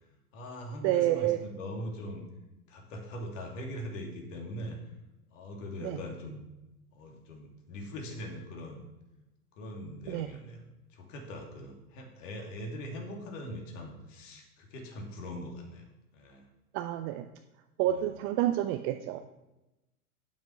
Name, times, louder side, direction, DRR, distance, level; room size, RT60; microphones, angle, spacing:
voice 1, 0.3-2.2 2.7-4.8 5.3-6.5 6.9-8.8 9.6-10.6 10.9-15.8 16.1-16.5 17.8-18.1, equal, 55° left, 1 dB, 2.8 m, -41 dB
voice 2, 0.8-1.4 5.8-6.0 10.1-10.3 16.7-17.3 17.8-19.2, right 13 dB, 30° right, 7 dB, 0.5 m, -29 dB
9.2 x 7.2 x 5.2 m, 0.98 s
hypercardioid pair, 105°, 45 cm